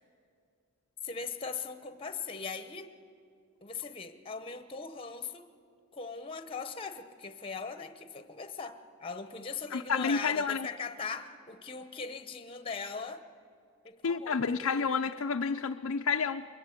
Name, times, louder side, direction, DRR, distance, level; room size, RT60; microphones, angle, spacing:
voice 1, 1.0-2.9 3.6-5.4 5.9-13.2 13.8-14.4, left 5 dB, 25° left, 9 dB, 0.9 m, -40 dB
voice 2, 9.7-10.7 14.0-16.4, left 5 dB, 70° left, 5 dB, 0.5 m, -30 dB
23.0 x 22.0 x 8.4 m, 2.4 s
head